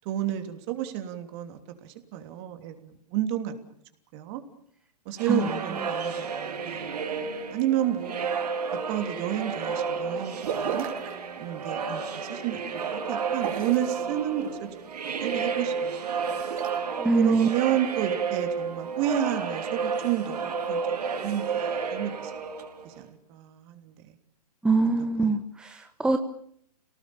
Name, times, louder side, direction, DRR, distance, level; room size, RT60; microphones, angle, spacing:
voice 1, 0.0-3.5 4.1-4.4 5.0-8.2 8.9-10.9 11.4-16.3 17.1-22.3 22.8-24.0, right 11 dB, 40° right, 8 dB, 3.2 m, -31 dB
sound 1, 5.2-23.0, right 5 dB, 75° right, 4.2 m, -31 dB
sound 2, 10.4-11.1 13.3-13.9 16.1-16.7, right 8 dB, 55° right, 4.2 m, -34 dB
voice 2, 17.0-17.5 24.6-26.2, right 3 dB, 5° right, 6 dB, 1.1 m, -23 dB
28.5 x 18.5 x 7.1 m, 0.66 s
hypercardioid pair, 130°, 21 cm